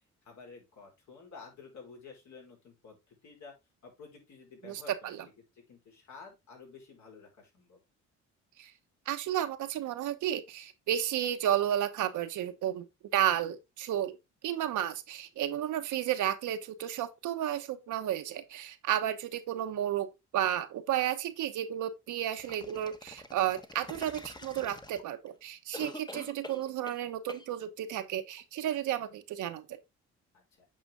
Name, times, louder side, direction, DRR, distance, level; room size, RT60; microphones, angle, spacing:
voice 1, 0.2-3.5 3.8-5.1 5.5-7.8 30.3-30.7, left 4 dB, 65° left, 4.7 m, -51 dB
voice 2, 4.6-5.2 8.6-8.7 9.1-12.9 13.1-14.2 14.4-20.1 20.3-29.6, right 11 dB, 80° right, 1.1 m, -32 dB
sound 1, 22.4-25.3 25.7-27.0 27.3-27.5, left 2 dB, 15° left, 1.1 m, -46 dB
8.7 x 5.0 x 3.6 m
cardioid pair, 90°, 30 cm